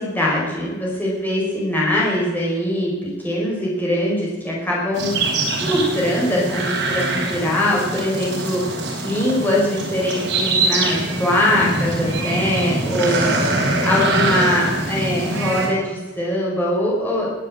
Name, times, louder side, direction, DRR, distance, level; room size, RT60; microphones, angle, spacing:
voice 1, 0.0-5.2 5.5-8.6 9.0-13.4 13.8-17.3, left 1 dB, 10° left, -5 dB, 4.8 m, -22 dB
sound 1, 4.9-15.7, right 2 dB, 70° right, 4.7 m, -23 dB
20.0 x 8.8 x 7.6 m, 1.4 s
head